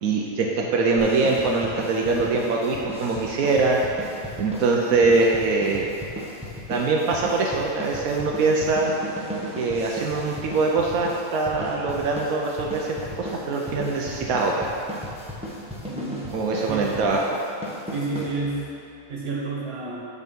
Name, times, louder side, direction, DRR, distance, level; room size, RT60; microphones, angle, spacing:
voice 1, 0.0-3.8 4.4-5.9 6.7-8.9 9.6-14.7 16.3-17.4, right 3 dB, 85° right, -1 dB, 1.1 m, -23 dB
sound 1, 1.0-18.7, equal, 5° right, 0.9 m, -36 dB
voice 2, 15.9-16.2 16.7-17.2 17.9-18.6 19.1-20.1, right 3 dB, 50° right, -4 dB, 1.5 m, -30 dB
8.5 x 4.0 x 5.3 m, 2.7 s
omnidirectional pair, 1.5 m